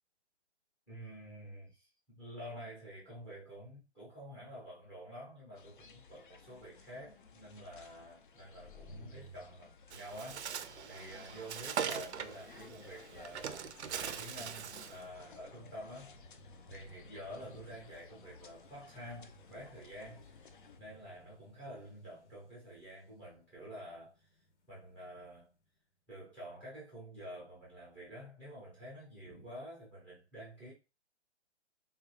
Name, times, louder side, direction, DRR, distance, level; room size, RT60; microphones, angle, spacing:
voice 1, 0.9-10.5 10.9-16.2 16.7-20.5 20.8-24.3 24.7-25.5 26.1-30.7, equal, 5° left, 0.6 m, -49 dB
sound 1, 5.6-20.8, left 5 dB, 45° left, 0.4 m, -58 dB
sound 2, 8.3-25.7, equal, 75° left, 0.9 m, -60 dB
Bird, 9.9-15.0, right 8 dB, 70° right, 0.5 m, -41 dB
3.7 x 2.3 x 3.1 m
hypercardioid pair, 155°, 35 cm